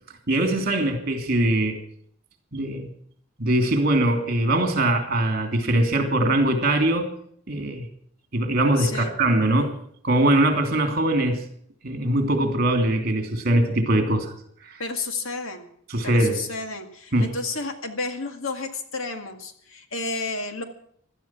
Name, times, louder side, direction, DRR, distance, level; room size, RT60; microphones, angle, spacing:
voice 1, 0.3-1.8 2.5-2.9 3.4-7.1 7.5-7.9 8.3-9.8 10.0-11.4 11.8-14.3 14.6-14.8 15.9-16.4 17.1-17.3, right 1 dB, 45° right, 5 dB, 3.0 m, -22 dB
voice 2, 8.8-9.1 14.8-15.7 16.0-20.6, left 3 dB, 70° left, 6 dB, 2.1 m, -31 dB
17.0 x 12.5 x 6.0 m, 0.65 s
head